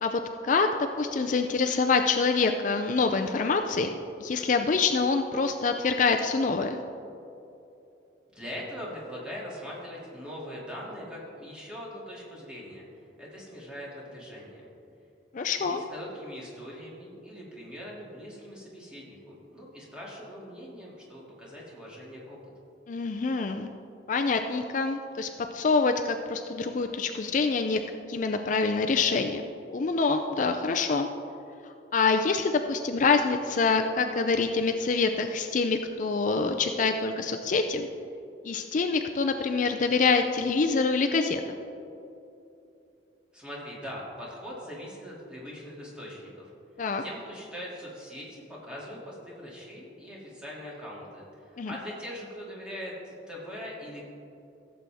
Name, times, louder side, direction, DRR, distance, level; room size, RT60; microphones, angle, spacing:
voice 1, 0.0-3.9 4.2-6.8 15.3-15.8 22.9-23.7 24.1-27.8 28.1-29.4 29.7-31.1 31.9-37.9 38.4-41.4 46.8-47.0 51.6-51.7, left 4 dB, 45° left, 6 dB, 0.4 m, -26 dB
voice 2, 8.3-12.9 13.2-14.7 15.6-22.4 43.3-46.5 47.0-54.0, equal, 5° right, -6 dB, 2.4 m, -41 dB
15.5 x 7.5 x 3.5 m, 2.8 s
head